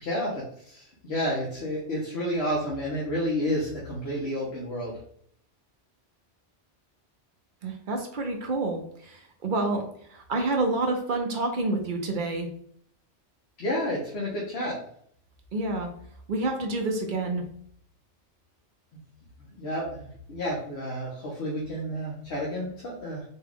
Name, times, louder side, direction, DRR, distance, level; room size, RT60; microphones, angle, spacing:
voice 1, 0.0-5.0 13.6-14.8 19.6-23.2, equal, 60° left, -5 dB, 1.2 m, -30 dB
voice 2, 7.6-9.8 10.1-12.5 15.5-15.9 16.3-17.4, right 2 dB, 50° right, 3 dB, 0.8 m, -28 dB
4.3 x 2.3 x 3.5 m, 0.64 s
omnidirectional pair, 1.2 m